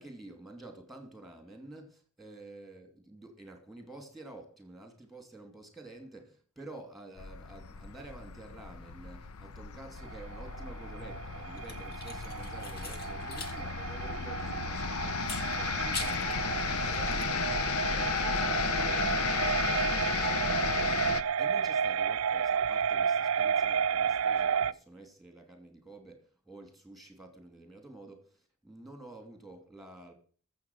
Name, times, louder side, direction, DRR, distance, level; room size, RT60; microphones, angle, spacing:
voice 1, 0.0-30.1, right 2 dB, ahead, 2.9 m, -50 dB
sound 1, 7.2-21.2, left 6 dB, 90° left, 0.7 m, -34 dB
sound 2, 10.0-24.7, right 7 dB, 65° right, 0.5 m, -32 dB
sound 3, 11.6-13.6 13.9-14.0 15.2-16.4 16.8-17.2, left 4 dB, 45° left, 1.6 m, -42 dB
13.0 x 7.6 x 6.3 m
head